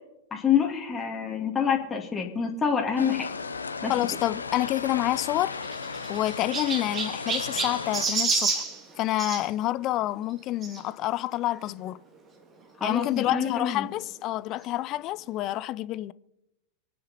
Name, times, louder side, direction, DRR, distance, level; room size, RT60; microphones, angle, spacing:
voice 1, 0.3-3.3 3.8-3.9 12.8-13.9, left 7 dB, 15° left, 2.3 m, -26 dB
sound 1, 3.0-8.1, left 4 dB, 75° left, 1.0 m, -35 dB
voice 2, 3.9-5.5 6.1-8.6 9.0-12.0 12.8-16.1, left 15 dB, 35° left, 0.5 m, -28 dB
Chirp tweet, 5.1-9.4 10.6-10.8 11.5-11.6 11.8-11.9 13.2-13.3, right 4 dB, 25° right, 2.8 m, -30 dB
26.5 x 9.5 x 4.3 m
figure-of-eight pair, 90°, 0 cm